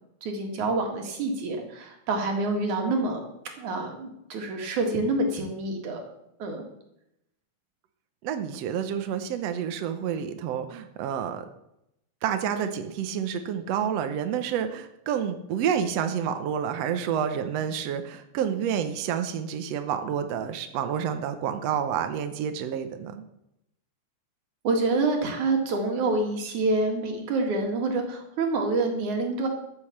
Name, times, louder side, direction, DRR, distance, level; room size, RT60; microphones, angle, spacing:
voice 1, 0.2-3.2 3.6-6.0 6.4-6.6 24.6-29.5, right 2 dB, 85° right, 3 dB, 3.5 m, -27 dB
voice 2, 8.2-11.5 12.2-23.2, right 8 dB, 70° right, 7 dB, 1.9 m, -29 dB
13.5 x 7.0 x 7.2 m, 0.82 s
omnidirectional pair, 3.3 m